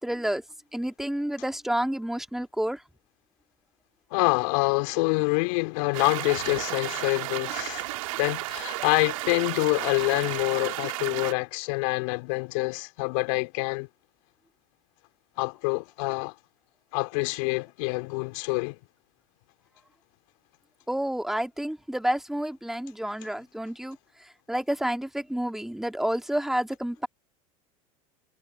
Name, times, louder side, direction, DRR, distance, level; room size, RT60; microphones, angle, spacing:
voice 1, 0.0-0.4 0.7-2.8 20.9-24.0 24.5-27.1, right 1 dB, ahead, 2.5 m, -29 dB
voice 2, 4.1-7.9 8.2-13.9 15.4-16.3 16.9-18.8, left 29 dB, 70° left, 4.5 m, -26 dB
sound 1, 5.9-11.3, right 18 dB, 75° right, 3.8 m, -33 dB
hypercardioid pair, 85°, 17 cm